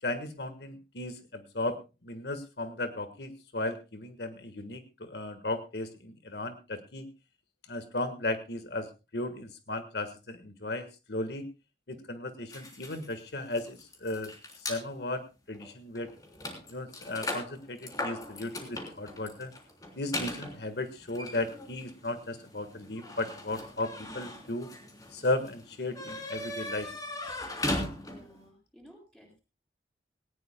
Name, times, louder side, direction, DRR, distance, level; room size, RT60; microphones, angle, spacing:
voice 1, 0.0-7.1 7.7-11.4 11.9-16.1 16.7-19.5 19.9-24.7 25.1-26.9, left 2 dB, 70° left, 9 dB, 1.5 m, -35 dB
sound 1, 12.5-14.8 15.5-15.7 15.9-28.4, left 1 dB, 20° left, 3.4 m, -39 dB
voice 2, 28.0-29.4, equal, 5° left, 1 dB, 6.9 m, -56 dB
19.0 x 19.0 x 2.2 m, 0.29 s
head